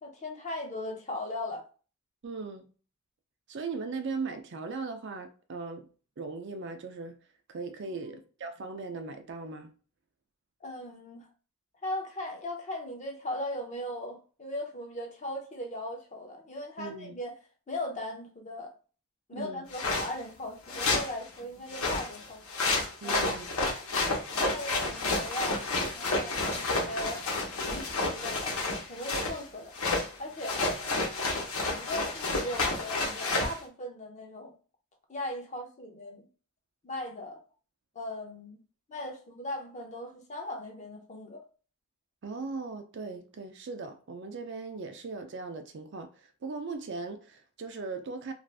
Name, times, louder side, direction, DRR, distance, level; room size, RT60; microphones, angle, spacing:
voice 1, 0.0-1.7 8.0-8.2 10.6-11.3 11.8-17.4 17.7-18.7 19.3-22.4 23.0-23.4 24.3-25.6 25.9-27.2 27.6-28.5 28.8-29.7 30.2-30.6 31.7-34.5 35.1-36.3 36.8-37.4 37.9-38.6 38.9-41.4, left 1 dB, 35° left, 0.6 m, -38 dB
voice 2, 2.2-2.7 3.5-5.9 6.2-7.2 7.5-9.7 16.8-17.1 19.3-19.7 23.0-23.4 42.2-48.3, right 4 dB, 55° right, 0.4 m, -38 dB
sound 1, 19.7-20.1 20.7-21.1 21.7-29.4 29.7-30.1 30.4-33.6, left 3 dB, 75° left, 1.0 m, -30 dB
2.5 x 2.4 x 3.3 m
head